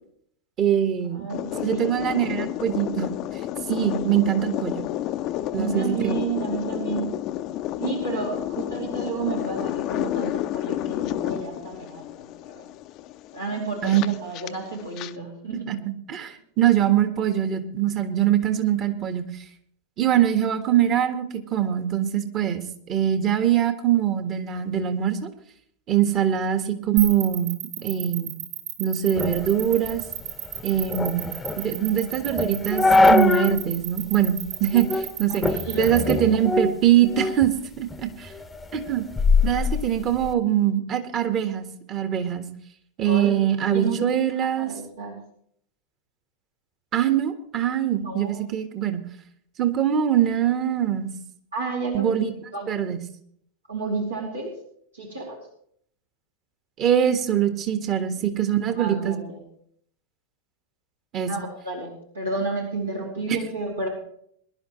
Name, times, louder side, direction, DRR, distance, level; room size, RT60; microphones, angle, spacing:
voice 1, 0.6-1.3 1.6-3.1 3.7-4.9 5.5-6.1 13.8-14.0 15.7-19.3 20.0-25.3 25.9-28.3 28.8-30.0 30.6-31.3 31.6-35.5 35.8-37.5 37.8-38.3 38.7-39.0 39.4-42.4 43.0-44.7 46.9-49.0 49.6-51.1 51.9-52.3 52.7-53.0 56.8-59.2 61.1-61.3, right 10 dB, 30° right, 8 dB, 1.6 m, -23 dB
voice 2, 1.1-2.2 5.5-7.2 7.8-12.6 13.3-15.7 35.3-36.4 43.0-44.1 44.4-45.2 48.0-48.5 51.5-52.2 52.5-52.7 53.7-54.6 54.9-55.4 58.1-58.2 58.7-59.4 61.2-63.9, right 4 dB, 75° right, -2 dB, 2.9 m, -31 dB
sound 1, 1.3-15.1, left 13 dB, 40° left, 0.6 m, -30 dB
sound 2, 27.0-36.1, right 11 dB, 60° right, 3.9 m, -32 dB
sound 3, 29.2-33.6 34.0-34.1 34.7-35.1 35.4-37.5 37.9-40.3, left 3 dB, 10° left, 0.9 m, -23 dB
22.0 x 11.5 x 3.2 m, 0.65 s
figure-of-eight pair, 90°, 0 cm